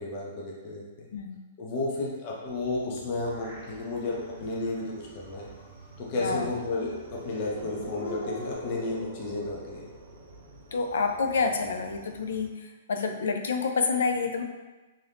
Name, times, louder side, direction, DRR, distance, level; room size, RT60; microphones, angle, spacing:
voice 1, 0.0-1.1 1.6-5.5 6.0-9.8, left 2 dB, 30° left, -3 dB, 0.5 m, -32 dB
sound 1, 2.5-12.5, right 3 dB, 50° right, 0.3 m, -51 dB
sound 2, 2.6-4.3 4.7-4.8 6.1-10.9, equal, 25° right, 0.8 m, -45 dB
Dog / Siren, 4.2-4.3 4.8-6.2 6.4-8.5, left 2 dB, 60° left, 1.4 m, -42 dB
voice 2, 10.7-14.4, left 4 dB, 80° left, 5 dB, 0.4 m, -28 dB
2.5 x 2.5 x 3.4 m, 1.2 s
hypercardioid pair, 175°, 0 cm